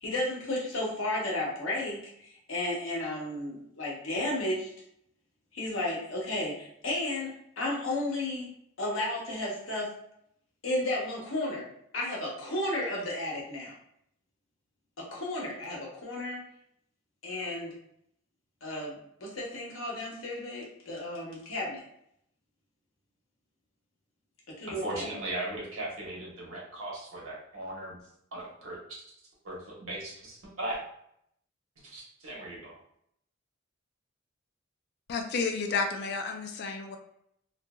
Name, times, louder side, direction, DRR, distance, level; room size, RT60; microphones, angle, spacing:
voice 1, 0.0-4.7 5.5-8.5 8.8-9.9 10.6-11.7 11.9-13.7 15.0-16.4 17.2-17.7 18.6-21.8 24.6-25.1, left 1 dB, 75° left, -3 dB, 0.9 m, -33 dB
voice 2, 24.7-28.0 28.3-28.8 29.4-30.8 31.8-32.8, right 1 dB, 90° right, -5 dB, 1.1 m, -38 dB
voice 3, 35.1-37.0, left 4 dB, 55° left, 5 dB, 0.4 m, -31 dB
2.7 x 2.5 x 2.3 m, 0.73 s
head